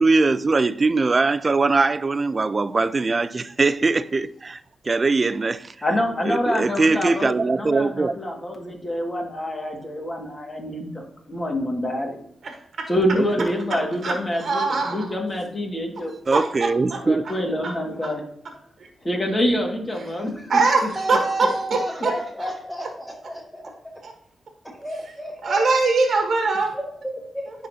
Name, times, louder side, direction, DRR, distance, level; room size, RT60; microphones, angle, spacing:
voice 1, 0.0-4.6 4.9-5.7 6.2-8.2 13.1-13.5 16.3-17.2, right 3 dB, 40° right, 0.3 m, -21 dB
voice 2, 5.8-12.2 12.9-16.1 16.9-18.2 19.0-20.9, left 1 dB, 30° left, 1.8 m, -26 dB
voice 3, 14.4-15.1 16.3-17.0 17.6-17.7 20.5-22.1 24.0-24.1 25.4-26.8, right 3 dB, 65° right, 1.1 m, -22 dB
voice 4, 20.9-23.9 24.6-25.6 26.7-27.5, right 1 dB, 5° left, 1.2 m, -32 dB
10.0 x 3.8 x 2.7 m
cardioid pair, 60°, 0 cm